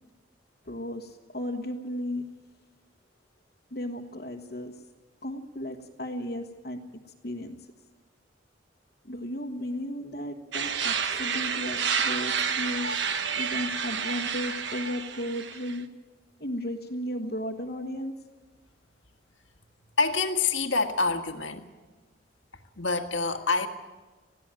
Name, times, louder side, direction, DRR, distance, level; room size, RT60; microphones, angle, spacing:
voice 1, 0.6-2.2 3.7-4.7 5.2-6.8 7.2-7.6 9.0-13.0 13.3-15.9 16.4-18.1, left 1 dB, 55° left, -1 dB, 1.3 m, -34 dB
sound 1, 10.5-15.8, right 6 dB, 75° right, 1.2 m, -30 dB
voice 2, 20.0-21.7 22.8-23.7, left 4 dB, 90° left, 6 dB, 1.8 m, -26 dB
20.5 x 15.5 x 9.0 m, 1.3 s
head